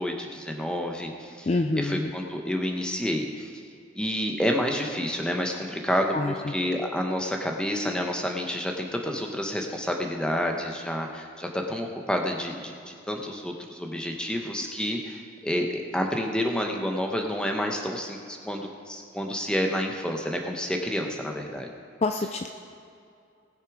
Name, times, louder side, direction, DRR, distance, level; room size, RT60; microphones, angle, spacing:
voice 1, 0.0-1.5 1.8-3.5 3.9-21.7, equal, 5° left, 2 dB, 1.0 m, -29 dB
voice 2, 1.5-2.1 6.1-6.6 22.0-22.5, left 2 dB, 30° left, 6 dB, 0.4 m, -27 dB
19.0 x 6.7 x 4.9 m, 2.5 s
head